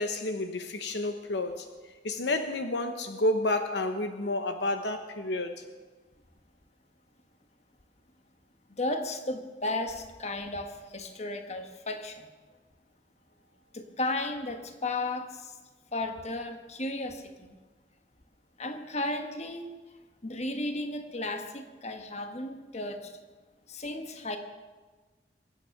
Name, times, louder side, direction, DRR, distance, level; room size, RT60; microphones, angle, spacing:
voice 1, 0.0-5.6, left 2 dB, 70° left, 7 dB, 0.9 m, -30 dB
voice 2, 8.7-12.3 13.7-15.5 15.9-17.6 18.6-19.7 20.2-23.1 23.7-24.4, left 2 dB, 40° left, 6 dB, 1.4 m, -34 dB
22.5 x 9.2 x 5.9 m, 1.3 s
head